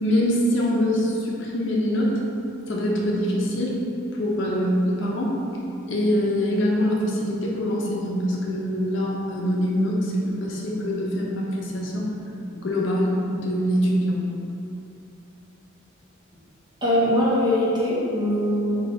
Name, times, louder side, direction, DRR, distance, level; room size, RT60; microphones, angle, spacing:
voice 1, 0.0-2.2 2.7-3.8 4.1-5.4 5.9-12.1 12.5-14.2, equal, 60° left, -3 dB, 0.6 m, -24 dB
voice 2, 16.8-18.9, left 1 dB, 20° right, -7 dB, 0.8 m, -22 dB
4.3 x 2.3 x 4.2 m, 2.8 s
head